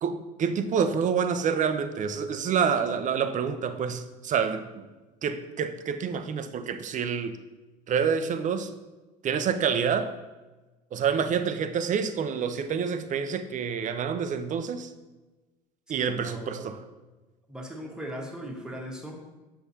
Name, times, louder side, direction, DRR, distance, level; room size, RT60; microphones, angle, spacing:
voice 1, 0.0-4.8 5.2-7.3 7.9-8.7 9.2-10.1 10.9-14.9 15.9-16.8, right 7 dB, 35° right, 10 dB, 0.6 m, -27 dB
voice 2, 15.9-16.8 17.5-19.2, equal, 5° right, 0 dB, 1.4 m, -39 dB
7.9 x 5.9 x 2.8 m, 1.2 s
hypercardioid pair, 80°, 21 cm